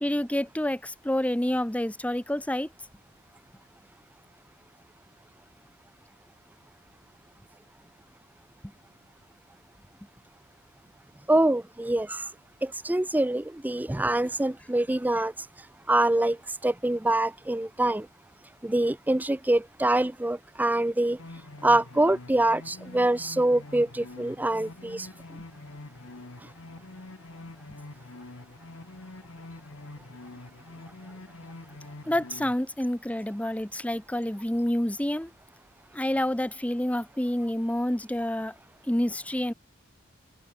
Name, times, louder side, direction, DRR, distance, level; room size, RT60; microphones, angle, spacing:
voice 1, 0.0-2.7 32.1-35.3 35.9-38.5 38.9-39.5, left 1 dB, 5° left, 0.9 m, -28 dB
voice 2, 11.3-12.2 12.6-15.3 15.9-16.4 16.6-18.1 18.6-21.2 21.6-25.1, right 1 dB, 10° right, 0.5 m, -25 dB
sound 1, 21.2-32.5, left 2 dB, 75° left, 1.4 m, -45 dB
head